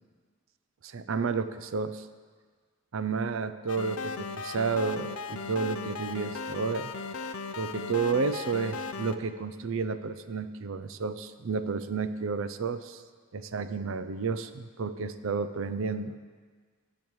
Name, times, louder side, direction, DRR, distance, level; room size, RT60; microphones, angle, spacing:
voice 1, 0.8-2.1 2.9-6.9 7.6-13.0 13.3-16.1, right 4 dB, 65° right, 12 dB, 0.5 m, -31 dB
sound 1, 3.7-9.2, left 4 dB, 75° left, 0.5 m, -37 dB
19.0 x 7.0 x 3.2 m, 1.6 s
head